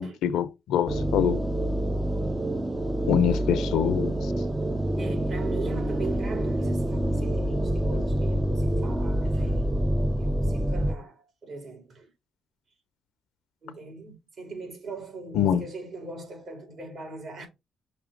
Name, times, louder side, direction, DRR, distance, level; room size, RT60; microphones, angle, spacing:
voice 1, 0.0-1.5 3.1-4.3 15.3-15.6, left 9 dB, 85° left, 0.7 m, -25 dB
sound 1, 0.9-10.9, right 1 dB, 15° right, 0.6 m, -27 dB
voice 2, 5.0-9.8 10.2-12.1 13.6-17.5, right 3 dB, 55° right, 3.8 m, -40 dB
6.0 x 3.3 x 5.1 m
cardioid pair, 90°, 0 cm